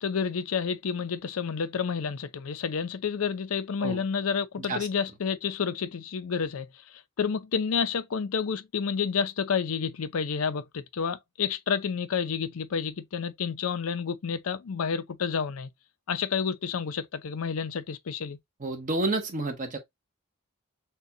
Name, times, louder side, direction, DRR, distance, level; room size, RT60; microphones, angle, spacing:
voice 1, 0.0-6.7 7.2-15.7 16.1-18.4, left 6 dB, 80° left, 0.5 m, -30 dB
voice 2, 18.6-19.8, right 2 dB, 40° right, 0.8 m, -30 dB
6.5 x 2.3 x 2.7 m
head